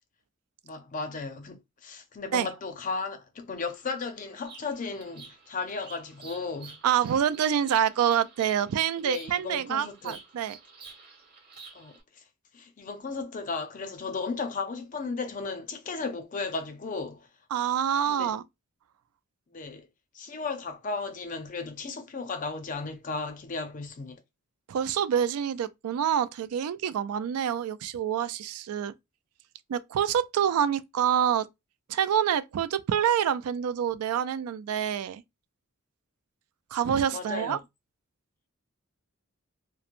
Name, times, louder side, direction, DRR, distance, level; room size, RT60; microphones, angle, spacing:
voice 1, 0.6-6.8 9.0-10.2 11.7-12.2 12.5-17.3 18.1-18.3 19.5-19.9 20.1-24.2 37.0-37.6, left 4 dB, 35° left, 0.5 m, -35 dB
Bird vocalization bird call bird song, 3.5-12.0, right 5 dB, 45° right, 1.0 m, -50 dB
voice 2, 6.8-10.6 17.5-18.4 24.7-28.9 29.7-31.5 31.9-35.2 36.7-37.6, right 9 dB, 85° right, 0.3 m, -27 dB
3.0 x 2.0 x 2.4 m
head